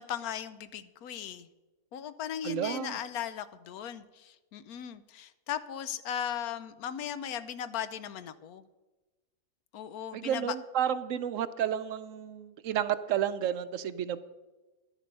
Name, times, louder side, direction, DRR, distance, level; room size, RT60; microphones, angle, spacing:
voice 1, 0.0-1.5 1.9-8.6 9.7-10.5, left 9 dB, 85° left, 13 dB, 1.2 m, -37 dB
voice 2, 2.4-3.0 10.1-14.2, right 9 dB, 70° right, 14 dB, 0.9 m, -31 dB
11.0 x 10.0 x 5.3 m, 1.2 s
omnidirectional pair, 1.5 m